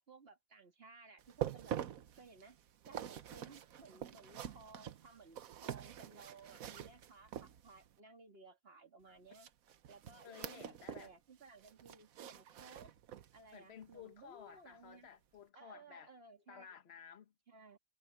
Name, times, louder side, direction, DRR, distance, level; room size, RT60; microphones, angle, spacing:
voice 1, 0.0-1.8 2.2-2.6 2.9-9.5 9.9-13.0 13.3-15.1 15.5-16.7 17.5-17.8, right 4 dB, 40° right, 2.5 m, -59 dB
sound 1, 1.2-7.9 9.3-11.1 11.4-13.4 13.8-14.0 14.5-14.6, right 10 dB, 65° right, 1.2 m, -46 dB
voice 2, 10.2-11.1 13.5-16.1 16.5-17.3, left 8 dB, 45° left, 1.4 m, -55 dB
omnidirectional pair, 1.6 m